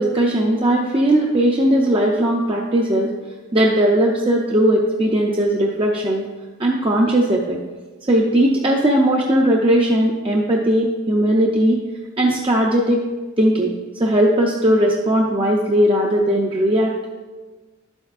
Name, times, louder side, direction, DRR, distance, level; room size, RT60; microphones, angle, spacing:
voice 1, 0.0-3.1 3.5-6.2 6.6-7.6 8.1-11.8 12.2-13.0 13.4-17.1, right 1 dB, 25° right, -1 dB, 0.5 m, -18 dB
11.0 x 7.9 x 2.4 m, 1.3 s
head